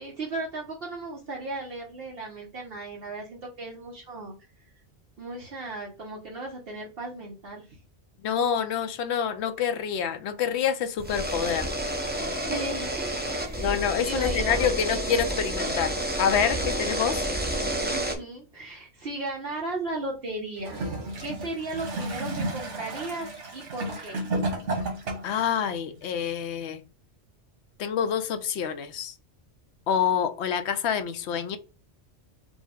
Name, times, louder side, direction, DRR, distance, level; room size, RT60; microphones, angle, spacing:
voice 1, 0.0-4.3 5.2-7.8 12.3-13.8 14.0-14.7 17.9-20.8 21.2-23.3 23.5-24.3, right 2 dB, 60° right, 1.0 m, -36 dB
voice 2, 8.2-11.7 13.6-17.2 25.2-26.8 27.8-29.1 29.9-31.6, left 8 dB, 70° left, 0.8 m, -27 dB
sound 1, 11.0-18.2, right 1 dB, 10° right, 0.5 m, -29 dB
Gurgling / Toilet flush, 20.6-25.4 26.3-26.4, right 2 dB, 85° right, 1.6 m, -32 dB
5.1 x 2.1 x 3.5 m
omnidirectional pair, 1.2 m